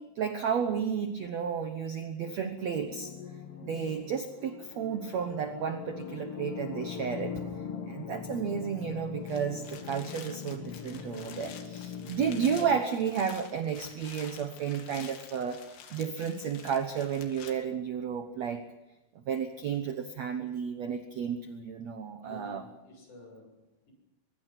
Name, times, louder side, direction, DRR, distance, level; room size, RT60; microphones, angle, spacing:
voice 1, 0.0-3.1 3.6-7.4 7.9-18.6 19.3-22.6, right 7 dB, 80° right, 7 dB, 1.5 m, -32 dB
sound 1, 2.8-12.8, left 7 dB, 60° left, 1.5 m, -41 dB
sound 2, 9.1-17.5, left 7 dB, 80° left, 4.4 m, -49 dB
voice 2, 11.9-12.3 22.2-23.9, left 2 dB, 45° left, 2 dB, 8.4 m, -50 dB
23.5 x 22.5 x 6.1 m, 0.97 s
omnidirectional pair, 4.9 m